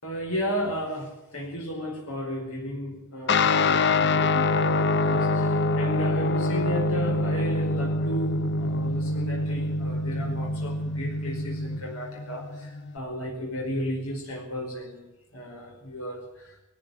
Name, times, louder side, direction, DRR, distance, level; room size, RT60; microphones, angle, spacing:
voice 1, 0.0-15.1 15.3-16.6, equal, 85° left, 0 dB, 5.1 m, -34 dB
Guitar, 3.3-13.0, left 2 dB, 55° left, 0.8 m, -25 dB
20.0 x 14.5 x 9.4 m, 0.91 s
head